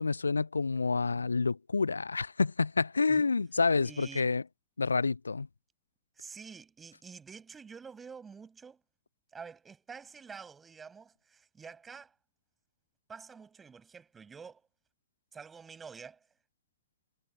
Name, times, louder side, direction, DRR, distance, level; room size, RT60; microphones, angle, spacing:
voice 1, 0.0-4.4 4.8-5.5, left 4 dB, 80° left, 0.6 m, -28 dB
voice 2, 3.8-4.3 6.2-8.8 9.3-12.1 13.1-14.6 15.3-16.3, right 5 dB, 15° right, 7.0 m, -48 dB
figure-of-eight pair, 90°, 0 cm